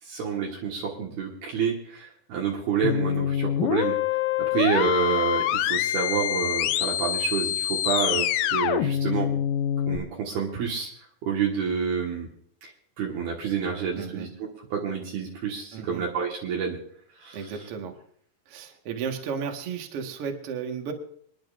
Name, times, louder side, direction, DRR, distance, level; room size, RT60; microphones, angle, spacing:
voice 1, 0.0-4.0 4.4-9.4 9.9-10.9 11.2-12.3 12.6-12.7 13.0-14.3 14.6-16.8 17.1-17.6, right 6 dB, 70° right, -2 dB, 3.4 m, -28 dB
sound 1, 2.8-10.0, left 11 dB, 85° left, 1.9 m, -25 dB
voice 2, 13.9-14.3 15.7-16.0 17.3-17.9 18.5-20.9, right 6 dB, 50° right, 3 dB, 1.9 m, -34 dB
27.0 x 10.5 x 2.5 m, 0.62 s
omnidirectional pair, 4.7 m